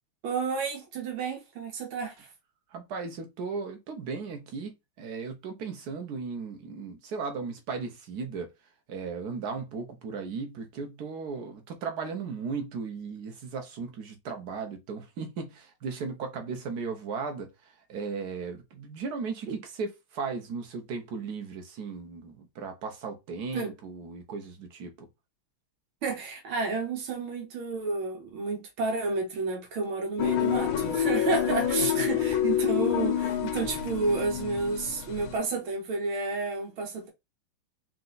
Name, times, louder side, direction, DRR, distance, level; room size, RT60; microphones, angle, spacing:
voice 1, 0.2-2.3 19.5-19.6 23.5-23.7 26.0-37.1, right 4 dB, 80° right, 2.0 m, -31 dB
voice 2, 2.7-4.7 5.0-8.5 8.9-17.5 17.9-25.1 31.8-32.0, right 5 dB, 55° right, 1.4 m, -36 dB
sound 1, 30.2-35.4, left 10 dB, 80° left, 1.6 m, -27 dB
4.4 x 2.5 x 3.9 m
omnidirectional pair, 2.3 m